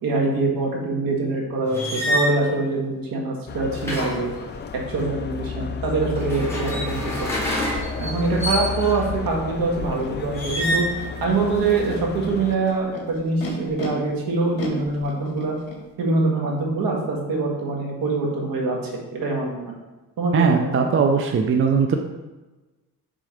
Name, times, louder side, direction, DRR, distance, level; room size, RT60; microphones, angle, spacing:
voice 1, 0.0-4.3 4.9-7.1 7.9-10.8 11.2-15.5 16.0-18.8 19.1-19.8 20.2-20.8, right 3 dB, 65° right, 0 dB, 1.7 m, -24 dB
sound 1, 1.7-2.3 3.7-5.0 6.1-9.1 10.3-11.0 11.4-12.0, equal, 5° left, 2.1 m, -28 dB
sound 2, 3.5-12.5, left 6 dB, 30° left, 0.4 m, -33 dB
Animal, 10.0-10.1 10.9-11.4 12.2-13.9 14.6-15.8, left 3 dB, 65° left, 1.6 m, -36 dB
voice 2, 20.3-22.0, right 6 dB, 35° right, 4 dB, 0.5 m, -19 dB
6.5 x 3.7 x 4.9 m, 1.1 s
cardioid pair, 110°, 37 cm